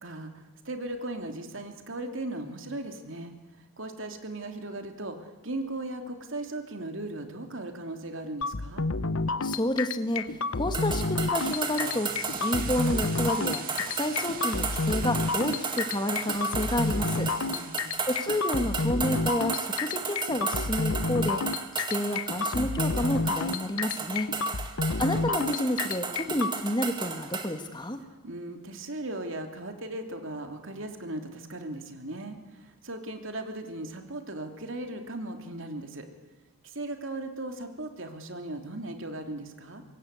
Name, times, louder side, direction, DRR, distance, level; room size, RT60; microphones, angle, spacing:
voice 1, 0.0-3.3 3.8-8.9 17.4-18.0 24.5-24.7 28.2-36.1 36.6-39.8, right 2 dB, 60° right, 5 dB, 3.0 m, -37 dB
sound 1, 8.4-26.5, left 3 dB, 70° left, 1.0 m, -30 dB
voice 2, 9.4-10.3 10.5-12.1 12.4-17.3 18.1-21.4 21.7-24.3 25.0-28.0, left 1 dB, 20° left, 7 dB, 1.7 m, -30 dB
sound 2, 10.7-27.5, right 5 dB, 20° right, 2.0 m, -34 dB
sound 3, 11.4-19.6, right 7 dB, 40° right, 2.2 m, -44 dB
25.5 x 22.5 x 8.3 m, 1.2 s
head